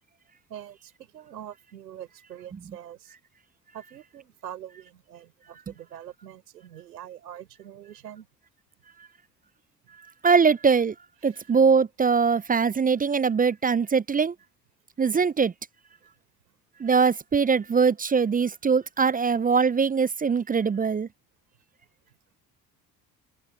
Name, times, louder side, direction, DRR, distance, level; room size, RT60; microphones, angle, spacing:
voice 1, 0.5-3.1 3.7-8.3 11.2-11.3, right 10 dB, 85° right, 5.6 m, -44 dB
voice 2, 10.2-10.9 11.2-14.3 15.0-15.5 16.8-21.1, right 5 dB, 20° right, 0.5 m, -22 dB
hypercardioid pair, 55°, 48 cm